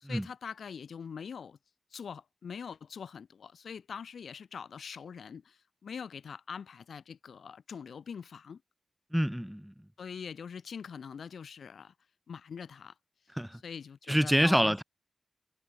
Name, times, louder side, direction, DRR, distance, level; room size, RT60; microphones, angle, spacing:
voice 1, 0.0-1.6 1.9-8.6 10.0-11.9 12.3-12.9 13.6-14.8, left 6 dB, 90° left, 0.5 m, -43 dB
voice 2, 9.1-9.7 13.3-13.6 14.1-14.8, equal, 5° right, 0.5 m, -26 dB
wide cardioid pair, 85°, 0 cm